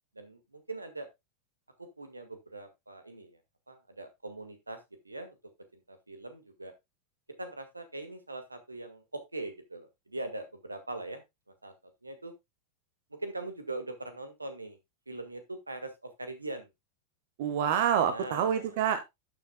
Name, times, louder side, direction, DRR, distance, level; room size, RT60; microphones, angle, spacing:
voice 1, 0.1-1.1 1.8-3.4 3.7-4.8 5.0-5.3 5.7-6.7 7.4-11.2 11.6-11.7 12.0-12.3 13.1-14.8 15.1-16.7 18.1-18.8, right 2 dB, 80° right, 9 dB, 1.6 m, -41 dB
voice 2, 17.4-19.0, right 8 dB, 50° right, 10 dB, 1.3 m, -27 dB
12.5 x 6.9 x 2.2 m, 0.20 s
figure-of-eight pair, 90°, 0 cm